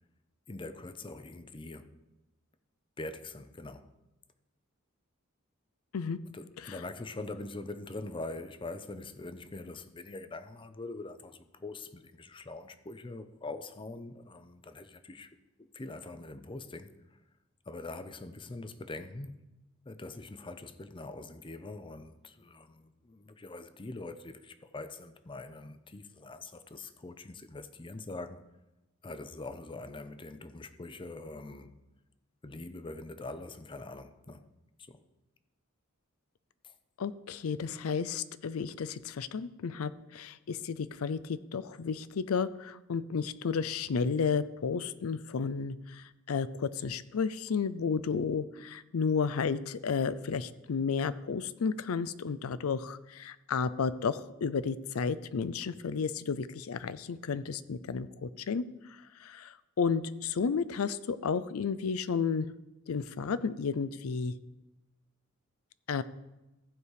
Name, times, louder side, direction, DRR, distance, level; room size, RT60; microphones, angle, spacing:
voice 1, 0.5-2.0 3.0-3.9 6.3-15.3 15.6-16.9 17.7-19.4 19.9-28.4 29.0-31.8 32.4-34.5 34.8-35.0 36.6-36.7, left 2 dB, 25° left, 0.5 m, -43 dB
voice 2, 37.0-62.5 62.9-64.3 65.9-66.0, left 5 dB, 85° left, 0.5 m, -32 dB
15.0 x 5.0 x 4.8 m
head